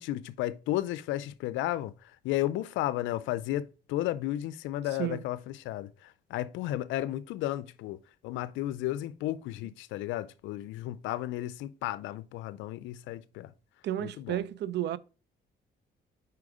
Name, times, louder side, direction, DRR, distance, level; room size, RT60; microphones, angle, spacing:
voice 1, 0.0-1.9 2.2-5.9 6.3-8.0 8.2-13.5 14.2-14.4, left 14 dB, 85° left, 0.4 m, -33 dB
voice 2, 13.8-15.0, right 12 dB, 65° right, 0.5 m, -32 dB
4.8 x 4.6 x 4.9 m
supercardioid pair, 70°, 19 cm